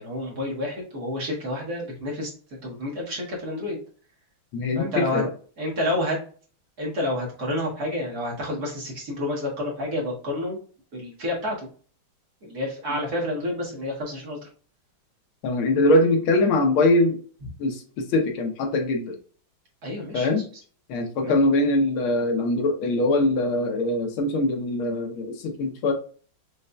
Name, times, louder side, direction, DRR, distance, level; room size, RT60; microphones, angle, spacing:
voice 1, 0.0-2.3 2.6-3.8 4.8-5.2 5.6-6.2 6.8-10.6 10.9-11.7 12.4-14.4 19.8-20.3 21.2-21.4, left 1 dB, 50° right, -3 dB, 2.0 m, -29 dB
voice 2, 4.5-5.3 15.4-17.2 17.6-19.2 20.1-20.4 20.9-25.9, left 2 dB, 80° left, 4 dB, 1.7 m, -22 dB
5.4 x 3.3 x 2.2 m, 0.42 s
omnidirectional pair, 2.3 m